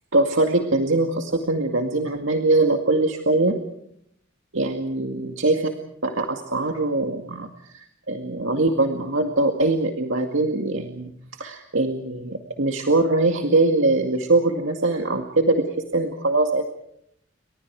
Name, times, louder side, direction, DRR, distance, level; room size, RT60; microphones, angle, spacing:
voice 1, 0.1-3.6 4.5-5.7 6.0-15.7 15.9-16.7, right 2 dB, 80° right, 4 dB, 2.2 m, -22 dB
30.0 x 24.5 x 4.8 m, 0.72 s
head